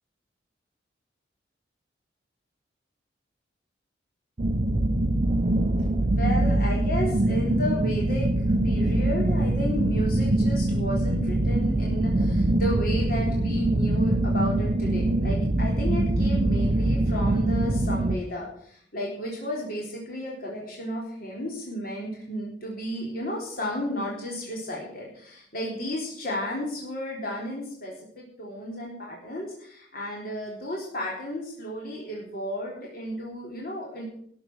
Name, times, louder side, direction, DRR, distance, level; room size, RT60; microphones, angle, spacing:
sound 1, 4.4-18.2, right 1 dB, 35° right, 0.7 m, -23 dB
voice 1, 6.0-8.3 8.6-34.0, equal, 50° left, -3 dB, 3.8 m, -33 dB
13.0 x 7.9 x 8.0 m, 0.65 s
head